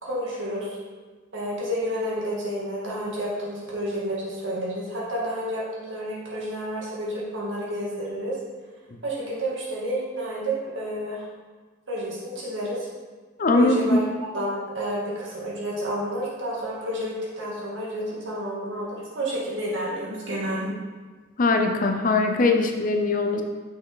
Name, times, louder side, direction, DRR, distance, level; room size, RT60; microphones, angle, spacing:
voice 1, 0.0-0.7 1.3-8.4 9.0-11.2 11.9-12.9 13.5-14.0 14.3-20.7, equal, 80° right, -5 dB, 2.1 m, -30 dB
voice 2, 13.4-14.0 21.4-23.4, left 2 dB, 45° left, 4 dB, 0.6 m, -21 dB
6.2 x 5.5 x 4.0 m, 1.4 s
head